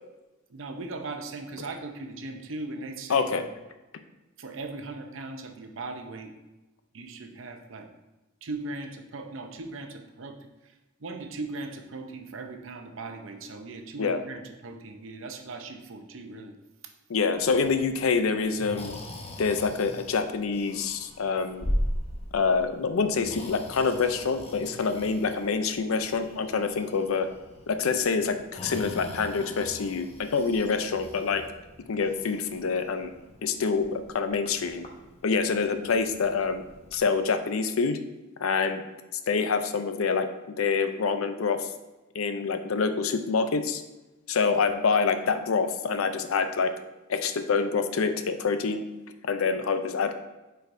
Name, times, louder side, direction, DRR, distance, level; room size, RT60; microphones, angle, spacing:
voice 1, 0.5-3.4 4.4-6.3 6.9-7.9 8.4-10.7 11.0-16.5, right 3 dB, 65° right, 5 dB, 0.7 m, -39 dB
voice 2, 3.1-3.4 14.0-14.2 17.1-18.9 19.4-21.7 22.3-27.3 27.7-31.4 31.9-33.1 33.4-34.9 35.2-36.6 36.9-38.0 38.4-38.8 39.3-40.3 40.6-41.7 42.1-43.8 44.3-46.7 47.1-48.8 49.2-50.1, left 5 dB, 80° left, 9 dB, 0.5 m, -26 dB
Breathing, 17.3-37.0, equal, 30° left, 0.8 m, -40 dB
8.0 x 4.6 x 2.6 m, 1.1 s
head